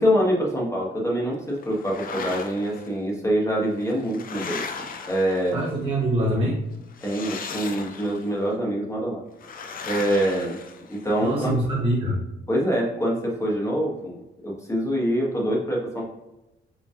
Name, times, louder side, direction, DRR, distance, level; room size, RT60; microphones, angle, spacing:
voice 1, 0.0-4.6 5.0-5.7 7.0-9.2 9.9-10.6 10.9-11.5 12.5-16.0, equal, 15° left, -3 dB, 1.3 m, -25 dB
sound 1, 1.6-2.9 3.7-5.8 6.9-8.3 9.4-11.3, left 5 dB, 45° left, 0.5 m, -37 dB
voice 2, 5.5-6.6 11.2-12.2, right 1 dB, 25° right, -3 dB, 0.9 m, -24 dB
4.9 x 3.5 x 2.4 m, 0.97 s
cardioid pair, 90°, 20 cm